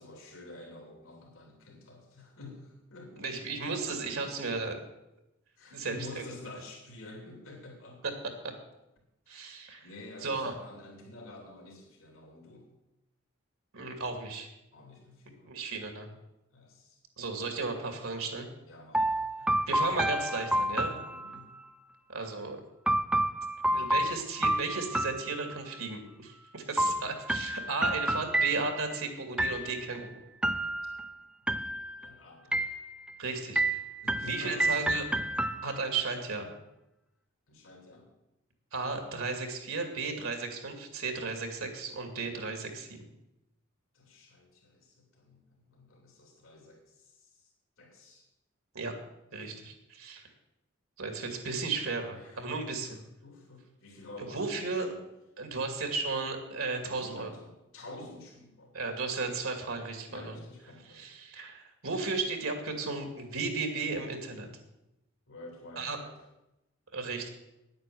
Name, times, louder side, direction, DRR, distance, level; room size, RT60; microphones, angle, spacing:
voice 1, 0.0-4.5 5.6-8.0 9.3-9.5 9.8-12.7 14.7-15.6 16.5-17.0 18.6-19.5 21.0-21.5 27.8-27.9 32.0-32.6 34.0-34.8 35.5-35.6 37.5-38.1 43.9-47.5 47.8-48.3 49.4-49.6 52.1-52.7 53.2-55.0 56.8-58.7 60.1-61.1 65.3-66.2, left 2 dB, 80° left, 0 dB, 3.0 m, -49 dB
voice 2, 3.1-4.8 5.7-5.9 9.3-9.9 10.2-10.5 13.7-14.5 15.4-16.1 17.2-18.5 19.7-21.0 22.1-22.6 23.7-30.2 33.2-33.8 34.2-35.2 35.6-36.5 38.7-43.1 48.7-48.9 49.3-50.3 51.0-53.0 54.3-54.9 55.4-57.3 58.7-60.4 60.9-64.5 65.8-66.0 66.9-67.3, right 3 dB, 85° right, 5 dB, 2.5 m, -34 dB
sound 1, 18.9-21.7 22.9-25.9 26.8-29.0 29.4-30.0 30.4-31.1 31.5-32.1 32.5-33.2 33.6-36.0, right 1 dB, 5° right, 0.4 m, -30 dB
10.0 x 9.0 x 7.9 m, 0.92 s
head